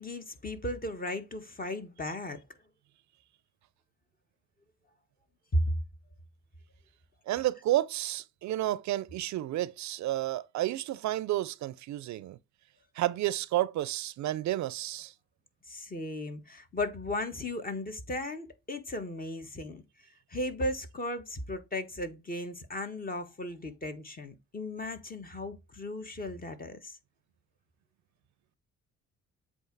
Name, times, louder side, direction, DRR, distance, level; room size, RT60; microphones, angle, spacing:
voice 1, 0.0-2.4 5.5-5.8 15.7-19.8 20.3-27.0, left 1 dB, 30° left, 1.3 m, -35 dB
voice 2, 7.3-12.4 13.0-15.1, right 14 dB, 70° right, 0.5 m, -31 dB
7.8 x 2.8 x 4.6 m
cardioid pair, 90°, 30 cm